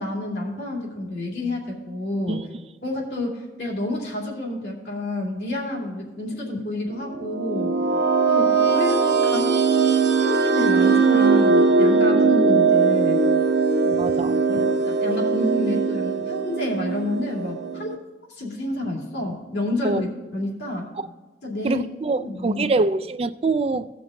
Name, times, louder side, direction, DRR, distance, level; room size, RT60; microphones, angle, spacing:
voice 1, 0.0-2.4 2.8-7.8 8.3-9.6 10.2-13.2 14.5-17.9 18.3-20.1 20.3-20.9 21.4-21.9 22.2-22.7, left 1 dB, 70° left, -3 dB, 2.8 m, -29 dB
sound 1, 7.1-17.9, right 4 dB, 70° right, 1.1 m, -20 dB
voice 2, 13.8-14.6 19.8-20.0 21.0-21.1 21.6-23.9, right 3 dB, 35° right, 11 dB, 0.3 m, -25 dB
17.0 x 5.9 x 3.8 m, 1.2 s
head